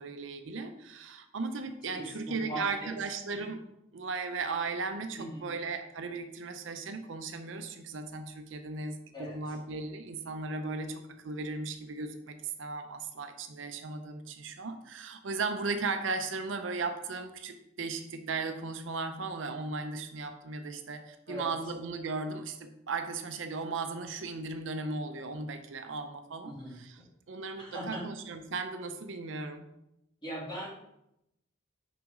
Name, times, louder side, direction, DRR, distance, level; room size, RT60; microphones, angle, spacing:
voice 1, 0.0-3.6 3.9-27.0 27.3-29.6, right 4 dB, 75° right, 8 dB, 0.6 m, -36 dB
voice 2, 1.9-2.9 5.2-5.5 9.1-9.6 21.3-21.5 26.4-26.8 27.6-28.0 30.2-30.7, right 1 dB, 25° left, -7 dB, 2.6 m, -40 dB
6.1 x 4.9 x 3.7 m, 0.83 s
head